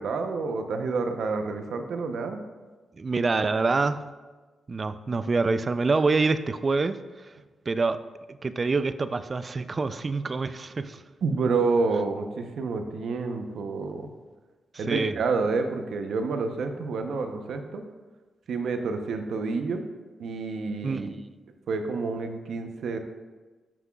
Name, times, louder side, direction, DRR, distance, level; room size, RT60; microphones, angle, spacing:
voice 1, 0.0-2.4 11.2-14.1 14.8-17.8 18.5-19.8 20.2-21.2 21.7-23.0, right 4 dB, 75° right, 6 dB, 0.8 m, -28 dB
voice 2, 3.0-4.0 4.7-7.0 7.7-8.0 8.4-11.0 14.7-15.1 20.8-21.2, right 3 dB, 40° right, 12 dB, 0.4 m, -26 dB
13.0 x 6.0 x 2.4 m, 1.3 s
cardioid pair, 70°, 0 cm